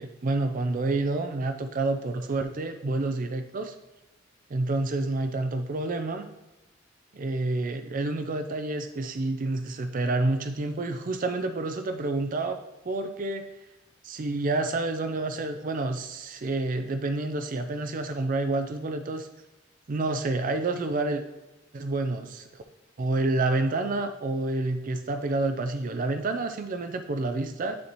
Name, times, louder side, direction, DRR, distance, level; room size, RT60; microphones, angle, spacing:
voice 1, 0.0-3.7 4.5-6.3 7.1-12.6 12.9-13.5 14.0-19.3 19.9-21.2 21.7-22.6 23.0-27.8, right 2 dB, 45° right, 7 dB, 0.5 m, -28 dB
9.6 x 4.1 x 3.0 m, 1.0 s
head